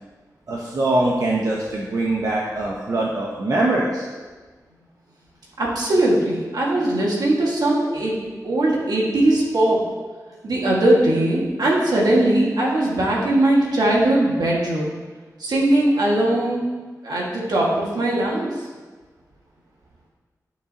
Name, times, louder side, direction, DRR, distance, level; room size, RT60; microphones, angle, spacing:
voice 1, 0.5-4.1, right 2 dB, 60° right, -3 dB, 0.9 m, -22 dB
voice 2, 5.6-8.2 8.4-9.8 10.4-14.9 15.4-16.6 17.0-18.5, right 1 dB, 80° right, -3 dB, 2.0 m, -20 dB
11.0 x 6.9 x 2.9 m, 1.3 s
wide cardioid pair, 120°, 7 cm